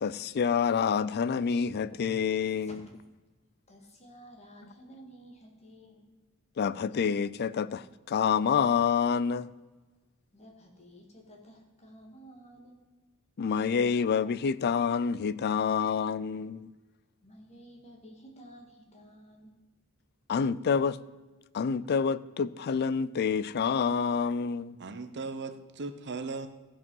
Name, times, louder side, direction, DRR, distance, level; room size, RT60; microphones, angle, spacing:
voice 1, 0.0-2.9 6.6-9.5 13.4-16.7 20.3-21.0 21.5-24.7, left 6 dB, 50° left, 0.4 m, -28 dB
voice 2, 3.7-6.1 10.3-12.8 17.2-19.5, equal, 30° left, 2.0 m, -52 dB
voice 3, 24.8-26.5, right 3 dB, 55° right, 0.8 m, -37 dB
14.5 x 5.4 x 5.5 m
head